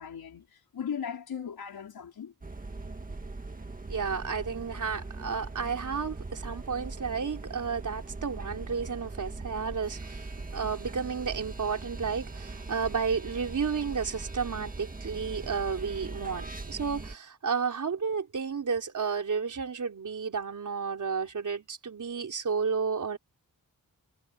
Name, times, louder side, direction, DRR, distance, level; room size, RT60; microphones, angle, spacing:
voice 1, 0.0-2.3, left 7 dB, 80° left, 5.3 m, -38 dB
sound 1, 2.4-17.2, right 3 dB, 25° right, 1.9 m, -40 dB
voice 2, 3.9-10.3 10.5-23.2, right 5 dB, 55° right, 3.8 m, -32 dB
wide cardioid pair, 135°, 36 cm